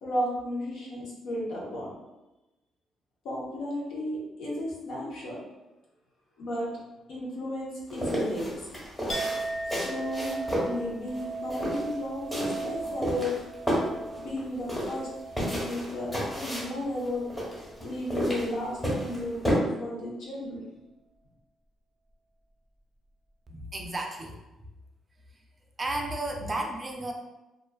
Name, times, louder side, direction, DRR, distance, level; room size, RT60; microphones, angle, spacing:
voice 1, 0.0-1.9 3.2-5.4 6.4-6.7 7.1-8.7 9.7-13.3 14.2-15.1 15.3-17.2 17.8-20.6, left 1 dB, 80° left, -5 dB, 0.8 m, -34 dB
sound 1, 7.9-19.5, equal, 15° left, 1.0 m, -32 dB
Chink clink, 9.1-16.8 17.1-17.8, right 3 dB, 35° left, 0.8 m, -38 dB
voice 2, 23.5-24.4 25.8-27.1, right 1 dB, 30° right, 1 dB, 0.4 m, -33 dB
2.4 x 2.3 x 2.2 m, 1.0 s
cardioid pair, 90°, 0 cm